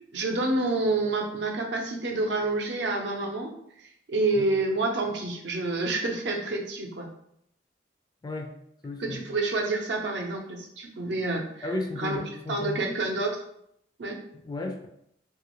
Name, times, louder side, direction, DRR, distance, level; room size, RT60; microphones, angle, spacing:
voice 1, 0.1-3.5 4.1-7.1 9.0-12.2 12.5-13.3 14.0-14.2, right 2 dB, 70° right, 1 dB, 0.6 m, -28 dB
voice 2, 8.2-8.5 8.8-9.2 11.6-13.0 14.3-14.9, left 2 dB, 20° left, 3 dB, 0.3 m, -34 dB
3.0 x 2.4 x 3.0 m, 0.73 s
head